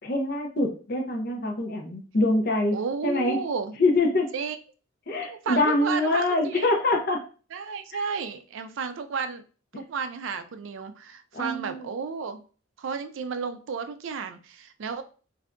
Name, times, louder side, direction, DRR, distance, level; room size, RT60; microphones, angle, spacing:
voice 1, 0.0-2.8 3.0-3.4 3.8-4.3 5.1-7.2 9.7-9.8 11.3-11.9, left 2 dB, 50° left, 2 dB, 0.7 m, -24 dB
voice 2, 2.7-3.7 4.3-4.6 5.3-6.7 7.5-9.4 9.8-12.4 12.8-15.0, right 5 dB, 70° right, 9 dB, 0.4 m, -32 dB
3.3 x 2.6 x 2.5 m, 0.38 s
head